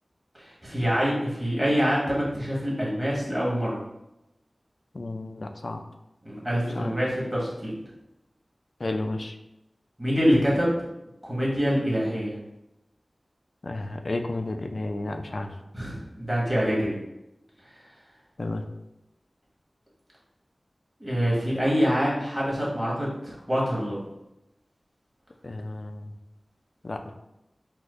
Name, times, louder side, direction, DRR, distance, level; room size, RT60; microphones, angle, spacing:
voice 1, 0.4-3.8 6.2-7.7 10.0-10.7 11.2-12.4 15.7-16.9 21.0-24.0, equal, 15° right, -6 dB, 1.3 m, -25 dB
voice 2, 4.9-5.8 6.7-6.9 8.8-9.4 13.6-15.5 18.4-18.6 25.4-26.1 26.8-27.1, left 2 dB, 55° left, 6 dB, 0.3 m, -32 dB
4.3 x 2.4 x 2.4 m, 0.89 s
wide cardioid pair, 65°, 0 cm